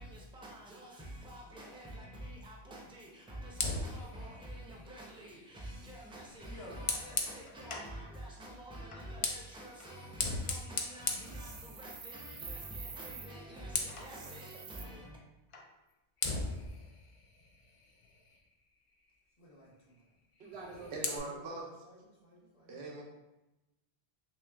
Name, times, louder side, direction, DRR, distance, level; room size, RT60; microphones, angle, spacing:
voice 1, 0.0-15.2, right 1 dB, 5° right, 0.6 m, -47 dB
Fire, 3.5-8.0 8.9-12.1 12.5-12.7 13.1-14.2 15.5-15.7 16.2-18.5 20.4-21.2, left 3 dB, 55° left, 0.3 m, -39 dB
sound 1, 6.4-10.0 11.8-11.9 12.5-15.0, left 1 dB, 85° left, 1.1 m, -57 dB
sound 2, 11.2-13.3 14.0-14.8, right 5 dB, 60° right, 0.7 m, -47 dB
voice 2, 19.4-20.1 20.6-21.6 21.8-23.0, left 1 dB, 35° left, 0.9 m, -57 dB
voice 3, 20.4-21.7 22.7-23.0, right 2 dB, 85° right, 1.0 m, -42 dB
3.0 x 3.0 x 3.4 m
omnidirectional pair, 1.1 m